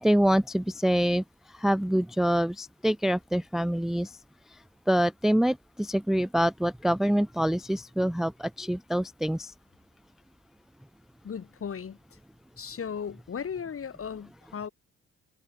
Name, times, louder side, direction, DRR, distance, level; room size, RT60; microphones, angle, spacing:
voice 1, 0.0-1.2 1.6-4.1 4.9-9.5, equal, ahead, 0.5 m, -25 dB
voice 2, 11.2-12.0 12.6-14.7, left 7 dB, 45° left, 6.8 m, -36 dB
cardioid pair, 90°, 30 cm